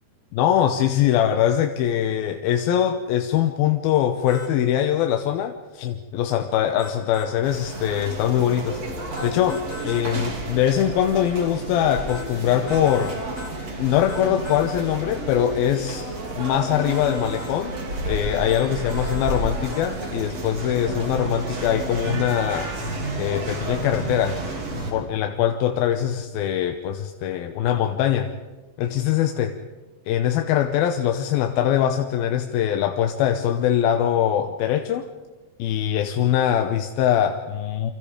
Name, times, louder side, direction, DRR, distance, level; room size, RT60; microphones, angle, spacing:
voice 1, 0.3-8.8 9.2-13.1 13.8-16.1 16.3-17.7 18.1-22.7 23.2-24.4 24.9-28.3 28.8-29.6 30.1-35.1 35.6-37.9, left 10 dB, 80° left, 6 dB, 2.7 m, -22 dB
sound 1, 4.3-4.5 6.8-7.3 9.2-10.1 12.1-12.3 12.7-13.6 14.1-14.6 16.9-17.6 18.9-19.5 19.7-19.9, left 2 dB, 25° left, 3.2 m, -40 dB
sound 2, 7.4-24.9, right 2 dB, 45° right, 4.6 m, -31 dB
29.0 x 25.5 x 5.1 m, 1.2 s
omnidirectional pair, 4.3 m